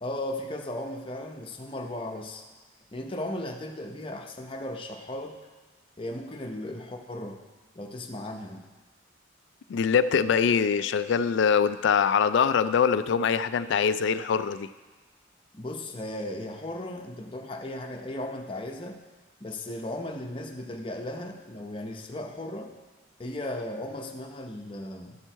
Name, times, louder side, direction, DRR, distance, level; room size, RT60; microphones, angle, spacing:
voice 1, 0.0-2.4 2.9-5.4 6.0-7.4 7.7-8.6 15.5-19.0 19.4-22.7 23.2-25.2, left 1 dB, 25° left, 2 dB, 0.7 m, -36 dB
voice 2, 9.7-14.7, left 6 dB, 60° left, 13 dB, 0.3 m, -23 dB
12.5 x 4.6 x 4.5 m, 1.3 s
head